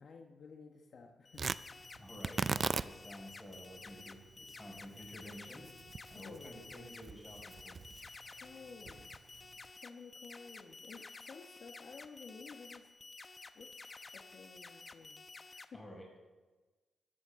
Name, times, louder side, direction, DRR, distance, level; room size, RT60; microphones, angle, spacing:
voice 1, 0.0-1.4 6.1-6.7 8.4-9.3 9.7-12.9 13.5-13.8 14.1-15.2 15.5-15.8, left 5 dB, 65° left, 3 dB, 1.2 m, -53 dB
sound 1, 1.2-15.6, left 3 dB, 35° left, 0.9 m, -52 dB
Tearing, 1.3-9.7, right 5 dB, 45° right, 0.4 m, -41 dB
voice 2, 2.0-5.6 6.1-7.8 15.7-16.2, equal, 10° left, -1 dB, 5.5 m, -51 dB
14.5 x 14.5 x 3.8 m, 1.3 s
cardioid pair, 75°, 0 cm